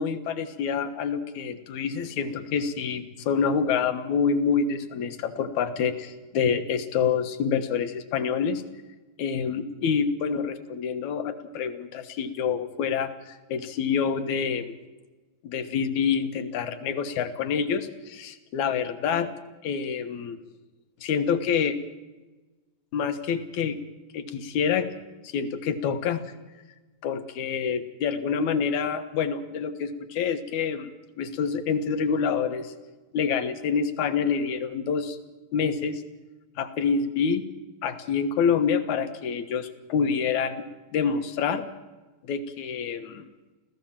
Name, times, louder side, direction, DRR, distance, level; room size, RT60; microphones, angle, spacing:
voice 1, 0.0-8.6 9.2-14.8 15.4-19.3 19.6-20.4 21.0-21.8 22.9-23.8 24.1-24.9 25.2-26.2 27.0-30.9 31.2-32.7 33.1-35.2 35.5-36.0 36.6-37.4 37.8-40.6 40.9-41.6 42.3-43.3, left 6 dB, 70° left, 10 dB, 2.6 m, -27 dB
28.0 x 16.0 x 7.4 m, 1.2 s
omnidirectional pair, 3.6 m